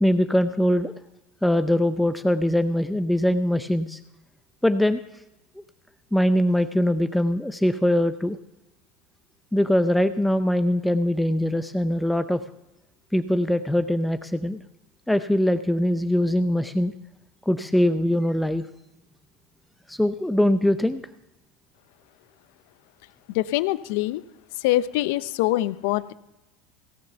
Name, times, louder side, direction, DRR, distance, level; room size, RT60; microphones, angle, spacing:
voice 1, 0.0-0.9 1.4-4.0 4.6-5.0 6.1-8.4 9.5-12.4 13.1-14.6 15.1-16.9 17.5-18.7 19.9-21.0, left 1 dB, 5° left, 10 dB, 0.5 m, -22 dB
voice 2, 23.3-24.2 24.6-26.1, left 16 dB, 75° left, 16 dB, 0.5 m, -24 dB
17.0 x 6.4 x 6.8 m, 0.95 s
supercardioid pair, 100°, 0 cm